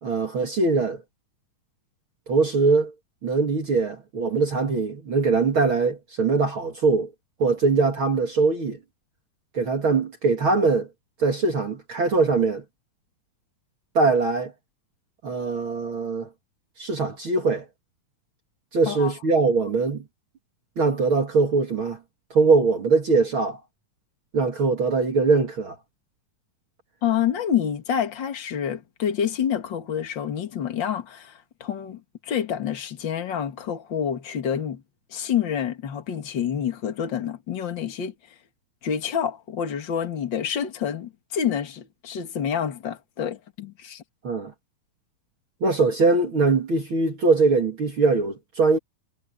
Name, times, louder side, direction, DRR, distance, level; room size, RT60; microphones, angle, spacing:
voice 1, 0.0-1.0 2.3-2.9 3.2-7.1 7.4-8.8 9.5-10.9 11.2-12.6 13.9-14.5 15.2-16.3 16.8-17.7 18.7-20.0 20.8-22.0 22.3-23.6 24.3-25.8 44.2-44.5 45.6-48.8, right 4 dB, 40° right, 2.6 m, -22 dB
voice 2, 27.0-34.8 35.1-38.1 38.8-44.0, left 8 dB, 40° left, 2.3 m, -28 dB
omnidirectional pair, 3.9 m